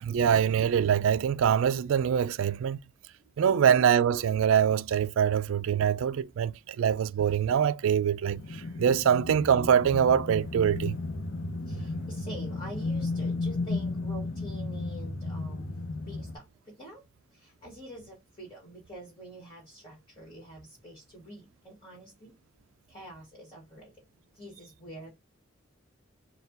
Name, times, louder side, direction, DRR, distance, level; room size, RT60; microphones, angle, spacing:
voice 1, 0.0-2.8 3.4-11.0, right 8 dB, 75° right, 0.3 m, -24 dB
voice 2, 3.2-3.5 11.6-15.7 16.0-22.3 22.9-24.0 24.3-25.1, right 1 dB, 25° left, 1.5 m, -46 dB
sound 1, 8.3-16.4, left 3 dB, 65° left, 0.6 m, -34 dB
4.2 x 2.3 x 3.9 m
head